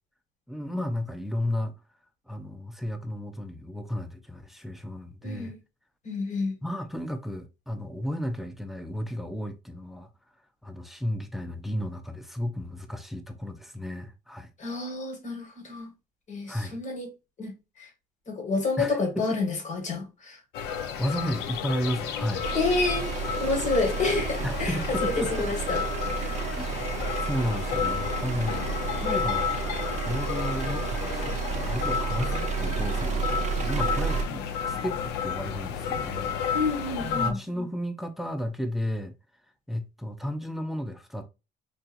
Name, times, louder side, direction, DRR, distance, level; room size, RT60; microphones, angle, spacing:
voice 1, 0.5-1.8 2.3-5.5 6.6-10.1 10.6-14.5 16.5-16.8 18.8-19.3 21.0-22.4 24.4-25.5 26.4-26.7 27.3-28.6 29.0-29.5 30.0-36.4 37.0-39.1 39.7-41.3, equal, ahead, 0.6 m, -33 dB
voice 2, 5.2-5.6 6.1-6.6 14.6-15.9 16.3-17.1 17.4-17.5 17.8-17.9 18.3-20.4 22.5-23.1 23.4-24.8 25.0-25.8 26.2-26.4 34.3-34.4 36.5-37.4, left 3 dB, 45° left, 1.8 m, -29 dB
sound 1, 20.5-37.3, left 7 dB, 90° left, 0.6 m, -32 dB
sound 2, 22.4-34.2, right 6 dB, 45° right, 0.5 m, -31 dB
4.6 x 2.7 x 2.5 m
cardioid pair, 110°, 17 cm